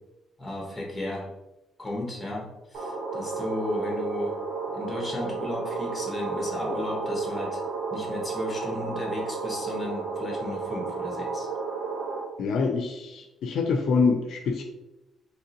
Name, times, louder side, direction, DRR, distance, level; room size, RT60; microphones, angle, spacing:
voice 1, 0.4-1.3 1.8-4.4 4.7-7.6 7.9-11.5, left 1 dB, 10° left, -1 dB, 1.1 m, -34 dB
sound 1, 2.7-12.2, right 4 dB, 75° right, 1.0 m, -32 dB
voice 2, 12.4-14.6, left 4 dB, 65° left, 4 dB, 0.4 m, -25 dB
3.6 x 3.0 x 2.9 m, 0.98 s
cardioid pair, 130°, 0 cm